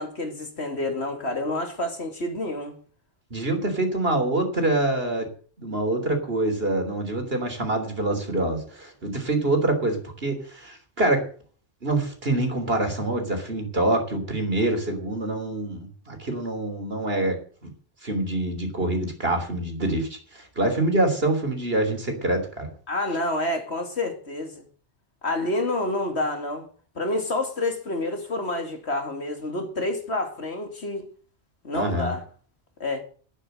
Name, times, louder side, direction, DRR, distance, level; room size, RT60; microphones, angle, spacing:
voice 1, 0.0-2.7 22.9-24.6 25.2-26.7 27.0-31.0 31.6-32.2 32.8-33.0, left 2 dB, 60° left, 2.8 m, -28 dB
voice 2, 3.3-5.3 5.6-11.2 11.8-17.4 17.6-17.7 18.0-22.7 31.7-32.1, right 2 dB, 55° right, 3.6 m, -25 dB
12.0 x 9.1 x 7.8 m
omnidirectional pair, 1.2 m